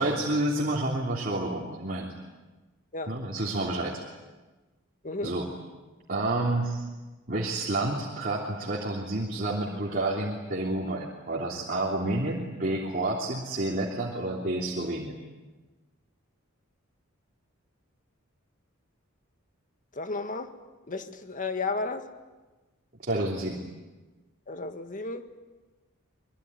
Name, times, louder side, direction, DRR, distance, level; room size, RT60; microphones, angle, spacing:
voice 1, 0.0-2.1 3.1-4.0 5.2-5.5 6.1-6.8 7.3-15.1 23.0-23.6, right 2 dB, 45° right, -3 dB, 3.2 m, -29 dB
voice 2, 19.9-20.5 20.9-22.1 24.5-25.3, left 3 dB, 40° left, 8 dB, 1.8 m, -33 dB
24.5 x 22.5 x 10.0 m, 1.2 s
head